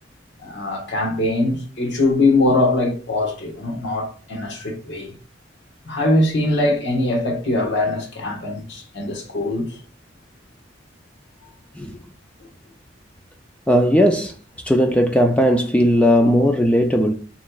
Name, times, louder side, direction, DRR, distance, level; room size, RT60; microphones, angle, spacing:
voice 1, 0.4-5.1 5.8-9.8 11.4-11.6 16.2-16.3, left 2 dB, 65° left, 1.4 m, -22 dB
voice 2, 13.7-14.3 14.6-17.1, equal, 5° left, 0.4 m, -17 dB
7.2 x 3.1 x 2.4 m
head